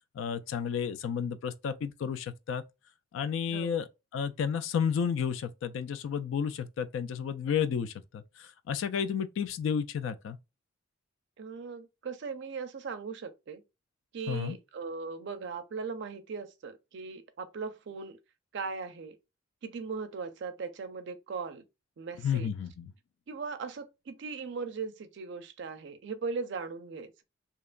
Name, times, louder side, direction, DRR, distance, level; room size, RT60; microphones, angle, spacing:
voice 1, 0.1-2.6 3.1-10.4 14.3-14.6 22.2-22.9, left 7 dB, 70° left, 0.3 m, -32 dB
voice 2, 3.5-3.8 11.4-13.6 14.1-18.2 18.5-19.2 19.6-21.6 22.0-22.5 23.3-27.2, right 5 dB, 60° right, 0.4 m, -39 dB
2.8 x 2.2 x 2.4 m
head